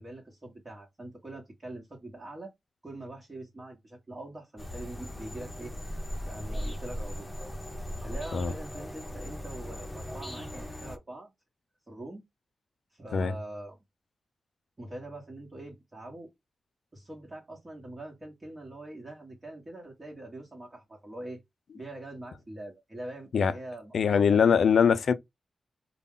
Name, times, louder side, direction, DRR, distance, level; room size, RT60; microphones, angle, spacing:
voice 1, 0.0-2.5 2.8-5.7 6.2-7.3 7.6-11.3 11.9-12.2 12.9-13.8 14.8-16.3 16.9-21.4 21.7-25.0, right 1 dB, 35° right, 1.0 m, -43 dB
sound 1, 4.6-11.0, equal, 20° left, 0.7 m, -38 dB
voice 2, 23.9-25.1, left 6 dB, 75° left, 0.3 m, -22 dB
2.2 x 2.0 x 3.5 m
cardioid pair, 50°, 0 cm